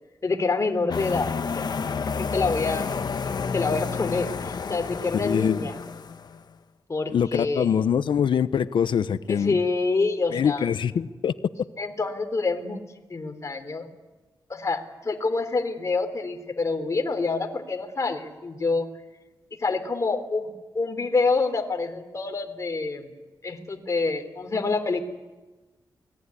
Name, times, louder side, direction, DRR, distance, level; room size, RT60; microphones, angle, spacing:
voice 1, 0.2-1.7 2.1-2.9 3.5-5.8 6.9-7.7 9.3-10.7 11.8-12.8 13.1-13.9 14.5-18.9 19.6-20.5 20.7-23.1 23.4-25.0, left 3 dB, 40° left, 5 dB, 3.6 m, -27 dB
sound 1, 0.9-6.4, left 5 dB, 55° left, 1.2 m, -30 dB
voice 2, 5.1-5.6 7.1-9.6 10.3-11.3, left 8 dB, 85° left, 13 dB, 0.8 m, -24 dB
29.5 x 20.0 x 9.8 m, 1.2 s
wide cardioid pair, 105°, 8 cm